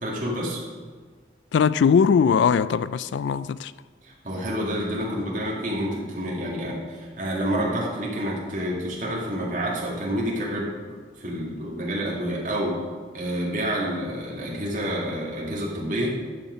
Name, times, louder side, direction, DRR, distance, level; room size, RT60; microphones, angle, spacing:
voice 1, 0.0-0.6 4.0-10.7 11.2-12.8 13.1-16.1, equal, 45° right, 2.3 m, -28 dB
voice 2, 1.5-3.7, left 6 dB, 85° left, 0.3 m, -20 dB
11.0 x 5.9 x 5.2 m
head